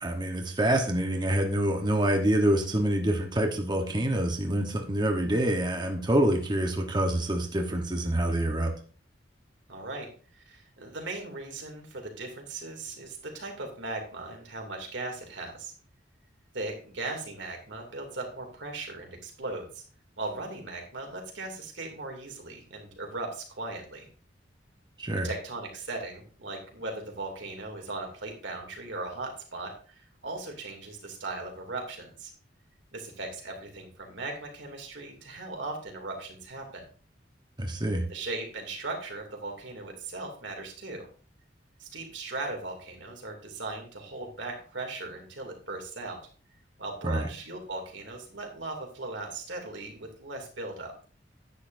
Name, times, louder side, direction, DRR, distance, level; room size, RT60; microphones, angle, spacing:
voice 1, 0.0-8.7 25.0-25.3 37.6-38.0 47.0-47.3, right 1 dB, 25° right, 2 dB, 1.2 m, -26 dB
voice 2, 9.7-10.1 10.3-15.7 16.5-19.8 20.2-24.1 25.2-29.7 30.2-32.3 32.9-36.8 38.1-41.1 41.8-46.2 46.8-50.9, right 2 dB, 75° right, 2 dB, 2.7 m, -38 dB
10.5 x 9.8 x 2.7 m, 0.40 s
head